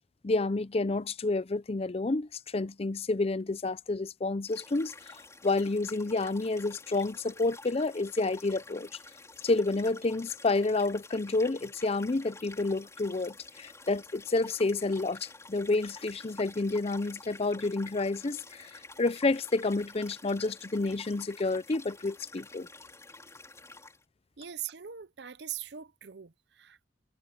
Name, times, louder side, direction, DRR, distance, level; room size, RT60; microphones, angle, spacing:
voice 1, 0.2-8.9 9.4-18.7 19.0-22.7, left 3 dB, 35° left, 0.5 m, -29 dB
sound 1, 4.5-24.0, left 3 dB, 15° left, 4.9 m, -50 dB
voice 2, 24.4-26.9, right 10 dB, 65° right, 0.7 m, -41 dB
head